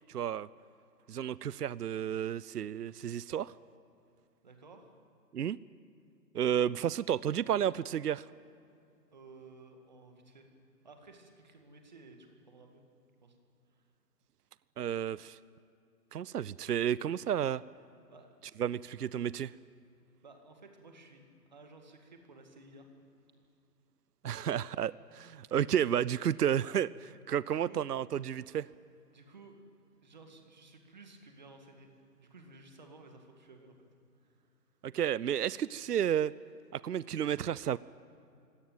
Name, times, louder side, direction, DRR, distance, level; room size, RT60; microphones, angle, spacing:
voice 1, 0.1-0.5 1.1-3.5 5.3-5.6 6.3-8.2 14.8-15.4 16.1-17.6 18.6-19.5 24.2-28.7 34.8-36.3 36.8-37.8, right 9 dB, 70° right, 20 dB, 0.6 m, -31 dB
voice 2, 4.4-5.0 9.1-10.5 10.8-12.8 13.2-13.4 13.7-13.9 18.1-18.4 20.2-22.9 27.5-27.8 29.1-29.6 30.0-31.9 32.2-33.9 34.2-34.6, right 3 dB, 25° right, 4 dB, 2.1 m, -55 dB
25.5 x 17.5 x 9.1 m, 2.6 s
hypercardioid pair, 180°, 48 cm